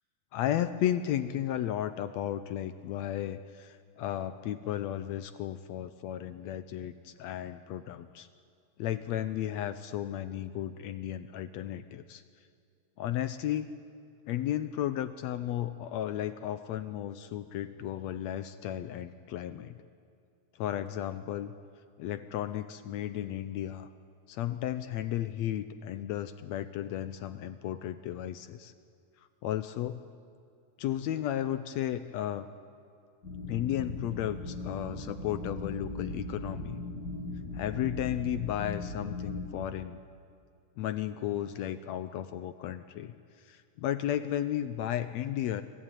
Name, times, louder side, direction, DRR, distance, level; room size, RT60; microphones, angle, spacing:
voice 1, 0.3-8.3 8.8-12.2 13.0-13.7 14.3-19.8 20.6-21.5 22.0-23.9 24.3-28.7 29.4-30.0 30.8-32.5 33.5-36.8 37.5-40.0 40.8-43.1 43.5-45.6, left 11 dB, 75° left, 11 dB, 1.7 m, -34 dB
sound 1, 33.2-39.5, left 2 dB, 35° left, 2.4 m, -39 dB
24.5 x 14.5 x 9.2 m, 2.4 s
omnidirectional pair, 3.5 m